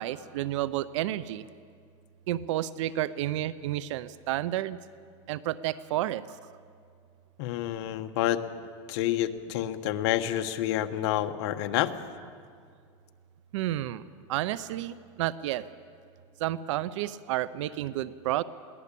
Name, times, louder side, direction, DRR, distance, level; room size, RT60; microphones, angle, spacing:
voice 1, 0.0-1.4 2.3-4.8 5.3-6.3 13.5-14.0 14.3-15.6 16.4-18.4, right 14 dB, 75° right, 17 dB, 0.7 m, -31 dB
voice 2, 7.4-8.4 8.9-11.9, left 13 dB, 60° left, 7 dB, 1.3 m, -28 dB
22.0 x 17.5 x 8.5 m, 2.2 s
supercardioid pair, 150°, 16 cm